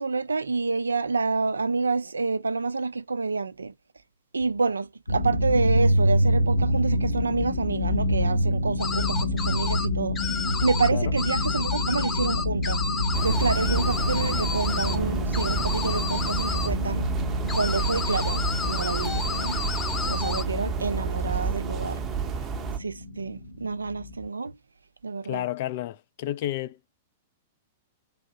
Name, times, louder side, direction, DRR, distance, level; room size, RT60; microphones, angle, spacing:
voice 1, 0.0-3.7 4.3-12.8 13.2-17.1 17.5-19.6 20.0-22.0 22.8-24.6 25.0-25.5, right 4 dB, 80° right, 0.3 m, -28 dB
sound 1, 5.1-24.3, left 1 dB, 75° left, 1.0 m, -27 dB
sound 2, 8.8-9.9 10.2-10.9 11.2-15.0 15.3-16.7 17.5-20.4, left 5 dB, 20° left, 0.7 m, -31 dB
sound 3, 13.1-22.8, right 5 dB, 25° right, 0.7 m, -31 dB
voice 2, 25.3-26.8, left 14 dB, 50° left, 0.4 m, -31 dB
3.4 x 2.7 x 3.9 m
figure-of-eight pair, 100°, 0 cm